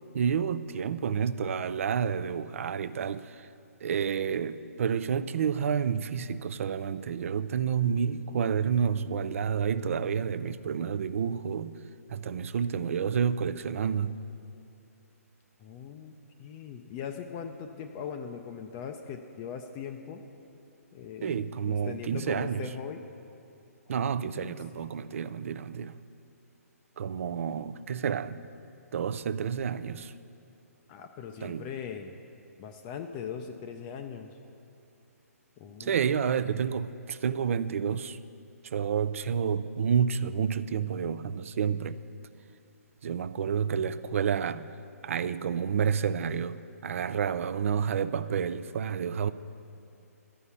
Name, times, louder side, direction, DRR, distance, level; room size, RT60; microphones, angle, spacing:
voice 1, 0.1-3.5 3.8-11.8 12.1-14.2 21.2-22.7 23.9-26.0 27.0-28.5 28.9-30.1 31.4-31.7 35.8-38.2 38.7-42.0 43.0-44.7 45.0-49.3, right 7 dB, 55° right, 0.4 m, -29 dB
voice 2, 15.6-16.1 16.4-20.2 20.9-23.1 23.9-24.8 30.9-32.2 32.6-34.3 35.6-36.3, left 7 dB, 25° left, 0.5 m, -40 dB
11.5 x 5.6 x 8.2 m
hypercardioid pair, 140°, 8 cm